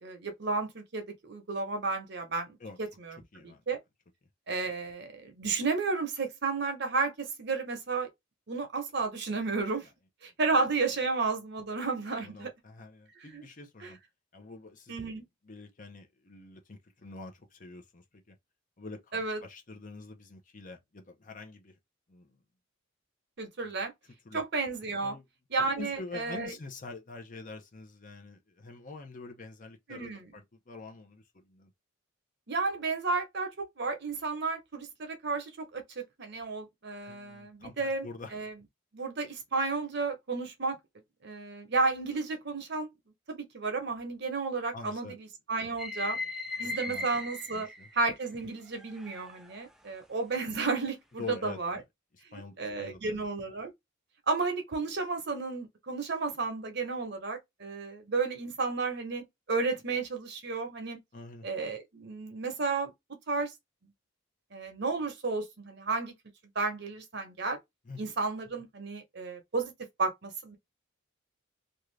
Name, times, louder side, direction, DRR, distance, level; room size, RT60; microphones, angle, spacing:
voice 1, 0.0-3.2 3.4-3.8 4.5-8.1 8.5-9.9 10.2-12.5 13.2-13.4 13.8-13.9 14.9-15.2 19.1-19.4 23.4-23.9 24.3-25.2 25.5-26.5 29.9-30.3 32.5-38.5 38.9-40.8 41.2-42.9 43.3-46.2 46.6-47.7 47.9-51.8 52.3-53.7 54.3-61.0 61.4-62.9 63.3-63.5 64.5-66.1 66.5-67.6 68.0-69.7 70.0-70.6, right 4 dB, 55° right, 0.9 m, -32 dB
voice 2, 12.2-14.0 14.3-15.0 15.4-18.4 18.8-21.8 22.1-22.4 23.6-23.9 24.2-24.4 25.0-25.2 25.8-31.7 37.1-38.3 44.7-45.1 46.1-46.3 46.6-47.1 47.5-47.9 51.2-51.8 52.3-53.2 61.1-61.5 67.9-68.1, left 3 dB, 40° left, 0.7 m, -46 dB
sound 1, 45.8-48.2 48.8-49.6, left 2 dB, ahead, 0.4 m, -38 dB
2.6 x 2.4 x 3.2 m
head